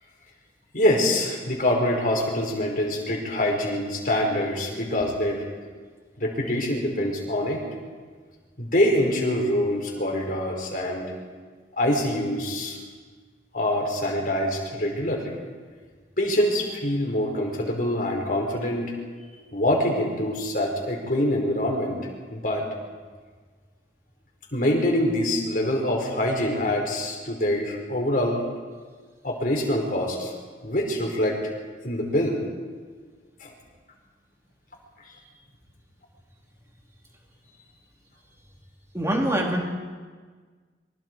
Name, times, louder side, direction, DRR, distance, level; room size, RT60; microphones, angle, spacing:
voice 1, 0.7-5.4 6.2-7.6 8.6-11.1 11.8-12.8 13.5-15.3 16.2-18.9 19.5-22.0 22.3-22.6 24.5-28.4 29.2-30.3 30.6-31.4 31.8-32.4 33.4-33.5 35.0-35.1, left 1 dB, 50° left, 0 dB, 4.8 m, -25 dB
voice 2, 38.9-39.6, right 1 dB, 15° right, -1 dB, 3.6 m, -24 dB
26.5 x 24.0 x 4.7 m, 1.5 s
head